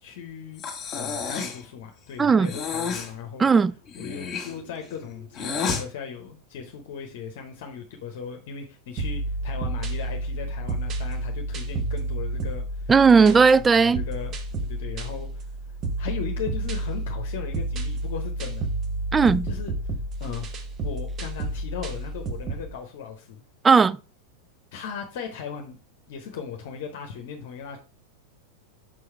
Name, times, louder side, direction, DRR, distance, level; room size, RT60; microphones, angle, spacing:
voice 1, 0.0-0.6 0.9-3.5 4.0-12.9 13.2-18.7 19.4-20.5 20.8-23.4 24.7-25.8 26.1-27.8, left 7 dB, 50° left, 0.9 m, -38 dB
Breathing, 0.6-1.6 2.4-3.1 3.9-5.8, left 5 dB, 25° left, 1.7 m, -31 dB
voice 2, 2.2-2.5 3.4-3.7 12.9-14.0 19.1-19.5 23.6-24.0, right 5 dB, 15° right, 0.3 m, -16 dB
sound 1, 9.0-22.7, right 2 dB, 30° right, 1.0 m, -30 dB
6.1 x 4.8 x 4.4 m
figure-of-eight pair, 90°, 0 cm